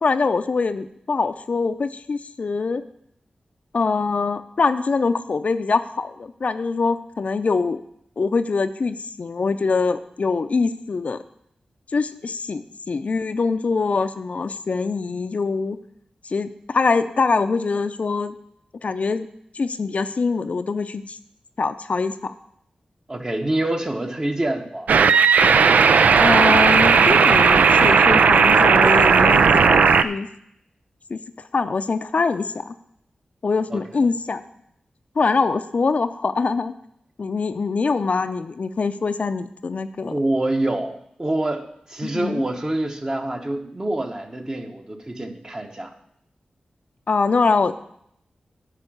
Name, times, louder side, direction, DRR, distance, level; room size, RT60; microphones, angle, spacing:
voice 1, 0.0-2.8 3.7-7.8 8.2-11.2 11.9-15.8 16.2-18.3 18.8-19.3 19.5-21.2 21.6-22.3 26.2-30.3 31.1-31.2 31.5-32.7 33.4-34.4 35.2-36.7 37.2-40.2 42.0-42.4 47.1-47.7, left 4 dB, 60° left, 10 dB, 0.5 m, -23 dB
voice 2, 23.1-24.9 33.7-33.9 40.1-45.9, right 1 dB, 30° right, 4 dB, 1.3 m, -26 dB
sound 1, 24.9-30.0, right 5 dB, 80° right, 0.4 m, -14 dB
9.8 x 5.0 x 7.9 m, 0.72 s
cardioid pair, 50°, 3 cm